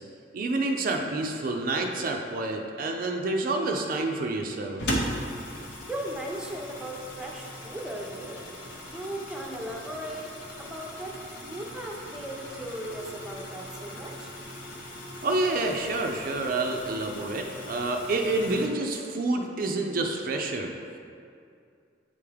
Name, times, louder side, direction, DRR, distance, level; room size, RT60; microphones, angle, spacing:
voice 1, 0.3-4.8 15.2-20.7, right 2 dB, 50° right, 2 dB, 0.4 m, -28 dB
sound 1, 4.8-18.7, equal, 80° left, 0.8 m, -38 dB
voice 2, 5.5-8.4 8.9-10.3 10.6-14.3, right 1 dB, 5° right, -2 dB, 0.6 m, -37 dB
8.4 x 3.5 x 3.3 m, 2.4 s
head